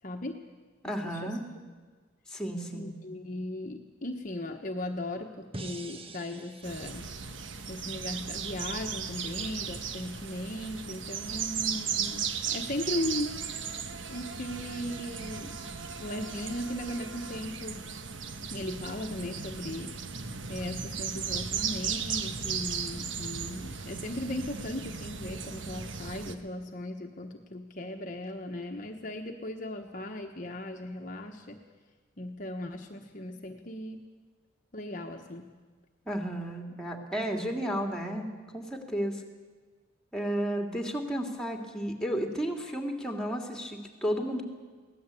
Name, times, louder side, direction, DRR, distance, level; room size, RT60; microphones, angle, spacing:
voice 1, 0.0-0.4 0.8-1.4 2.7-7.1 7.7-13.4 14.1-15.5 16.0-17.9 18.5-20.0 20.5-31.6 32.2-34.0 34.7-35.5, left 1 dB, 40° left, 3 dB, 1.2 m, -37 dB
voice 2, 0.8-1.4 2.3-2.9 36.1-39.2 40.1-44.4, equal, 5° left, 3 dB, 2.5 m, -33 dB
sound 1, 5.5-8.7, right 2 dB, 30° right, 1.2 m, -46 dB
sound 2, 6.6-26.3, right 6 dB, 70° right, 1.3 m, -36 dB
23.0 x 17.5 x 8.4 m, 1.4 s
head